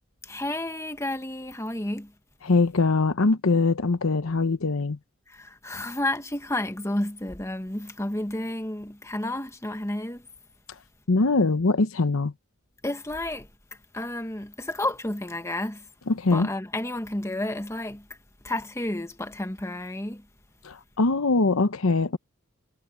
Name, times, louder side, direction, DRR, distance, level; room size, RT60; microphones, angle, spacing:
voice 1, 0.2-2.1 5.3-10.2 12.8-13.5 13.9-15.8 16.3-18.0 18.4-20.2, left 1 dB, 15° left, 1.3 m, -31 dB
voice 2, 2.4-5.0 11.1-12.3 16.1-16.5 20.6-22.2, left 3 dB, 80° left, 0.9 m, -22 dB
head